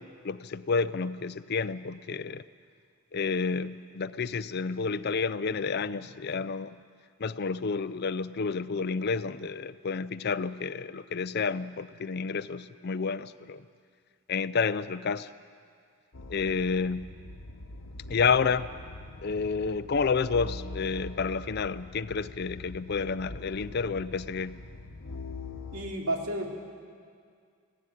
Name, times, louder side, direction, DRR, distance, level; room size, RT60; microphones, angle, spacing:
voice 1, 0.0-2.4 3.1-6.7 7.2-13.6 14.3-15.3 16.3-17.1 18.1-18.7 19.2-24.6, left 5 dB, 45° left, 15 dB, 0.4 m, -30 dB
sound 1, 16.1-25.8, left 2 dB, 70° left, 1.0 m, -43 dB
voice 2, 25.7-26.5, right 1 dB, 80° right, 0 dB, 2.9 m, -31 dB
18.0 x 16.5 x 9.8 m, 2.2 s
head